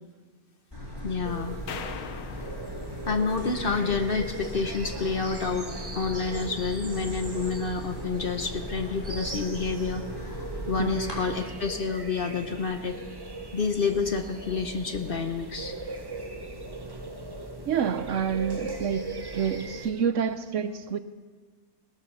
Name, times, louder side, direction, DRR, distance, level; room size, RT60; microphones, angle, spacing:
sound 1, 0.7-11.2, left 1 dB, 15° left, 3.5 m, -39 dB
voice 1, 1.0-1.6 3.1-5.7 5.9-10.4 10.7-13.0 13.5-15.8, left 5 dB, 45° left, 6 dB, 1.0 m, -29 dB
sound 2, 1.2-19.9, right 2 dB, 20° right, 1.0 m, -39 dB
sound 3, 1.7-4.0, left 7 dB, 85° left, 1.3 m, -42 dB
voice 2, 10.8-11.1 17.7-21.0, right 7 dB, 65° right, 11 dB, 1.0 m, -28 dB
17.5 x 13.5 x 5.5 m, 1.4 s
omnidirectional pair, 1.5 m